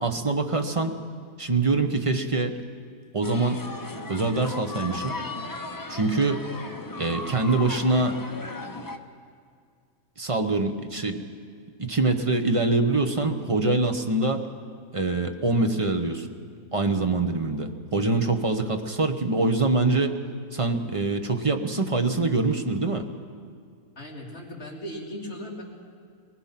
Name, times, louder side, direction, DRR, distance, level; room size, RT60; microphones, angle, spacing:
voice 1, 0.0-1.0 1.4-2.5 3.1-3.6 4.1-5.2 5.9-6.4 7.0-8.2 10.2-11.2 11.8-14.4 14.9-16.3 16.7-20.1 20.5-23.0, right 3 dB, 25° right, 5 dB, 0.8 m, -24 dB
sound 1, 3.2-9.0, left 2 dB, 20° left, 0.6 m, -36 dB
voice 2, 24.0-25.6, equal, 45° left, -3 dB, 3.1 m, -37 dB
22.5 x 20.0 x 5.9 m, 2.1 s
omnidirectional pair, 1.6 m